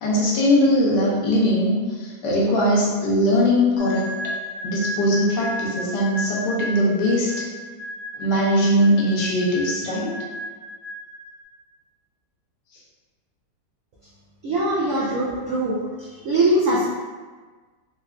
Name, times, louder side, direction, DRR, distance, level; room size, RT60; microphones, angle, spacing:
voice 1, 0.0-4.0 4.6-7.5 8.2-10.2, equal, 75° left, -4 dB, 1.3 m, -20 dB
sound 1, 3.8-11.4, equal, 55° right, 1.1 m, -34 dB
voice 2, 14.4-16.8, right 1 dB, 80° right, -6 dB, 0.7 m, -22 dB
3.7 x 2.3 x 2.3 m, 1.4 s
omnidirectional pair, 1.9 m